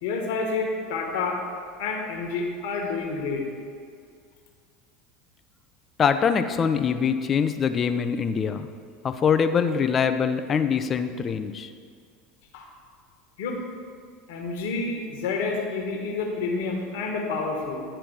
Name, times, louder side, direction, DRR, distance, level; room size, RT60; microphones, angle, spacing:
voice 1, 0.0-3.4 12.5-12.7 13.4-13.6 14.3-17.8, left 4 dB, 65° left, 1 dB, 1.5 m, -29 dB
voice 2, 6.0-8.7 9.0-11.7, left 6 dB, 35° left, 9 dB, 0.6 m, -23 dB
10.5 x 4.5 x 6.4 m, 2.2 s
hypercardioid pair, 75°, 0 cm